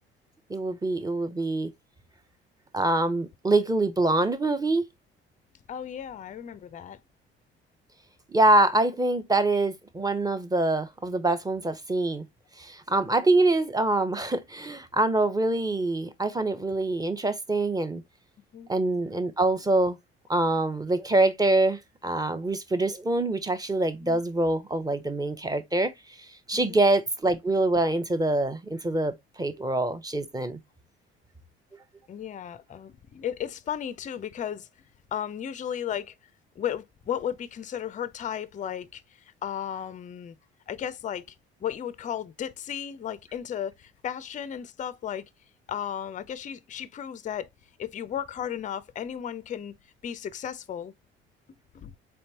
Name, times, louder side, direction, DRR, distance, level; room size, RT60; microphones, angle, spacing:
voice 1, 0.5-1.7 2.7-4.8 8.3-12.2 12.6-18.0 18.7-20.0 20.3-30.6, right 2 dB, 10° right, 0.8 m, -25 dB
voice 2, 5.7-7.0 18.5-18.7 24.0-24.2 26.6-26.8 32.1-34.7 35.1-36.1 36.6-40.4 40.7-41.3 41.6-45.2 45.7-47.5 47.8-49.7 50.0-50.9 51.7-52.0, left 9 dB, 25° left, 0.5 m, -34 dB
4.3 x 3.3 x 2.8 m
hypercardioid pair, 55°, 30 cm